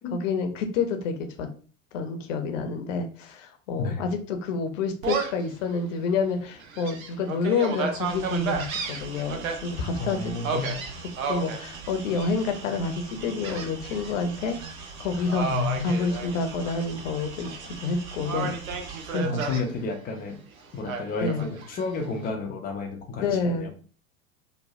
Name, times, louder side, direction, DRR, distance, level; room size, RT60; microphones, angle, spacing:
voice 1, 0.1-1.5 1.9-10.7 11.2-14.6 15.0-15.5 15.8-18.5 19.1-19.3 21.2-21.4 23.2-23.7, left 4 dB, 60° left, 7 dB, 0.7 m, -28 dB
Gull seagull, 5.0-5.5 6.0-6.1 6.6-9.6 10.4-11.6 12.1-12.6 13.4-14.1 14.5-14.7 15.3-16.8 17.2-17.9 18.3-19.6 20.9-21.9, right 5 dB, 70° right, 0.8 m, -32 dB
sound 1, 8.0-19.2, right 5 dB, 45° right, 1.1 m, -42 dB
voice 2, 10.0-10.8 15.1-16.2 19.2-20.4 20.7-23.7, left 3 dB, 25° left, 4 dB, 0.4 m, -31 dB
3.0 x 2.1 x 2.6 m, 0.40 s
figure-of-eight pair, 80°, 42 cm